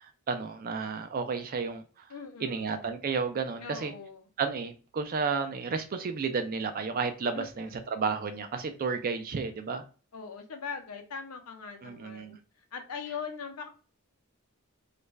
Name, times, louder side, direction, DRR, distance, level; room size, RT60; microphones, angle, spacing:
voice 1, 0.0-2.1 2.4-3.9 4.4-9.8 11.8-12.4, right 5 dB, 40° right, 0.4 m, -32 dB
voice 2, 2.1-2.8 3.6-4.3 7.3-7.8 10.1-12.4 12.7-13.7, left 5 dB, 90° left, 0.6 m, -41 dB
2.4 x 2.2 x 3.1 m
head